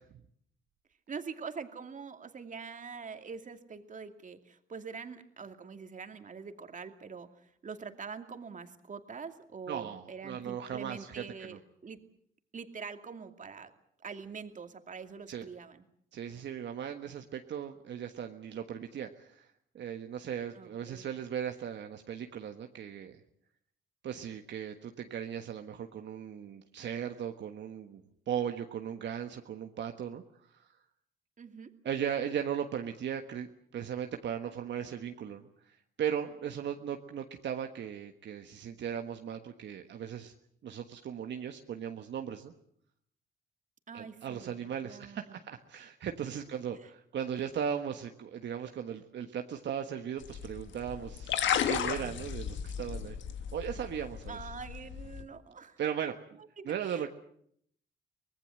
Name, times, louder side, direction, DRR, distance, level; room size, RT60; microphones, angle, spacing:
voice 1, 1.1-12.0 12.5-13.7 14.0-15.8 20.5-21.1 31.4-31.7 43.9-45.4 46.8-46.9 54.3-55.8 56.6-57.1, right 5 dB, 40° right, 7 dB, 2.5 m, -44 dB
voice 2, 9.7-11.6 15.3-15.4 16.1-23.2 24.0-28.0 28.3-30.7 31.8-40.3 40.6-42.5 43.9-51.3 51.7-53.2 53.5-54.4 55.8-56.1 56.6-57.1, right 8 dB, 65° right, 5 dB, 1.5 m, -37 dB
sound 1, 50.2-55.2, left 9 dB, 70° left, 1.6 m, -34 dB
24.5 x 19.5 x 7.8 m, 0.68 s
cardioid pair, 90°, 20 cm